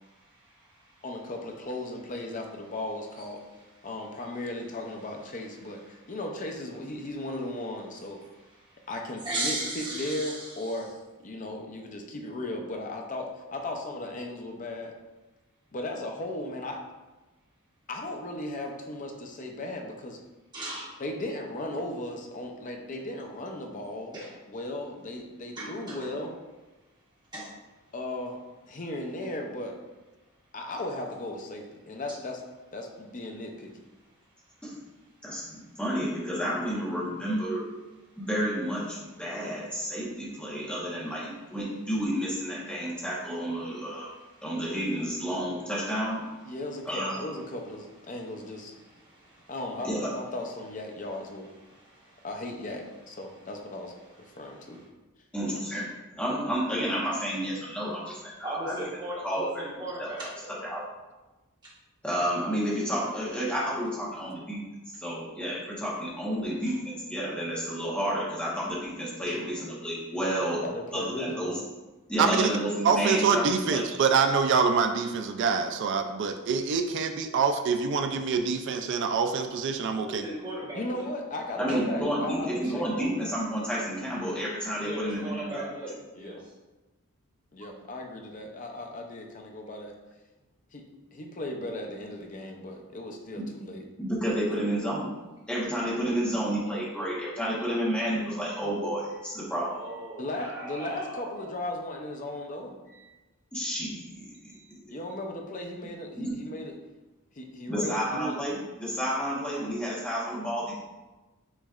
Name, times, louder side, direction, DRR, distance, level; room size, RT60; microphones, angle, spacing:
voice 1, 0.1-1.0 3.2-3.3 5.9-6.0 8.5-8.9 9.2-10.7 20.5-20.9 24.1-24.3 25.6-25.7 27.3-27.5 44.1-44.4 48.7-49.5 51.7-52.3 54.3-54.8 58.4-60.5 69.3-69.7 79.9-81.0 81.7-81.8 84.7-86.4 99.6-101.5 102.9-103.0 103.6-103.7 104.5-104.7, right 1 dB, 20° right, -7 dB, 1.4 m, -38 dB
voice 2, 1.0-3.4 3.8-8.2 8.9-10.9 11.2-14.9 15.7-16.8 17.9-20.2 21.0-24.2 24.5-26.4 27.9-28.4 28.7-29.8 30.5-32.4 32.7-33.8 46.4-48.7 49.5-51.5 52.2-53.9 54.2-54.8 70.6-71.6 80.7-83.2 86.2-86.5 87.5-89.9 90.7-93.8 100.2-102.8 104.9-106.7 107.4-108.4, left 1 dB, 35° left, 2 dB, 0.6 m, -36 dB
voice 3, 35.2-37.6 38.2-44.1 44.4-46.2 46.8-47.3 49.8-50.1 55.3-55.9 56.2-58.8 59.2-59.7 60.0-60.1 60.6-60.8 62.0-64.6 65.0-70.6 70.9-71.6 72.1-73.4 73.7-73.8 81.6-85.6 93.3-93.4 94.0-95.1 95.5-99.7 103.5-104.3 106.2-106.3 107.7-110.7, equal, 5° left, -7 dB, 1.1 m, -30 dB
voice 4, 72.2-72.5 72.8-80.2, right 5 dB, 55° right, 7 dB, 0.3 m, -25 dB
6.3 x 3.1 x 2.4 m, 1.1 s
head